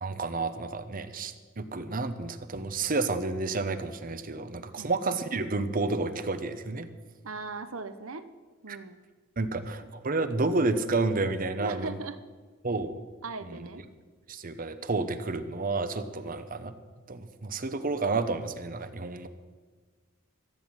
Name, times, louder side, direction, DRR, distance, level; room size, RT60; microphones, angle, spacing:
voice 1, 0.0-6.9 9.4-12.0 12.6-13.0 14.3-16.7 17.1-19.3, right 3 dB, 45° right, 11 dB, 0.9 m, -30 dB
voice 2, 7.2-8.2 8.6-9.0 9.8-9.9 11.6-12.2 13.2-13.8 16.2-16.4, right 3 dB, 85° right, 12 dB, 1.0 m, -39 dB
14.5 x 8.0 x 8.9 m, 1.4 s
head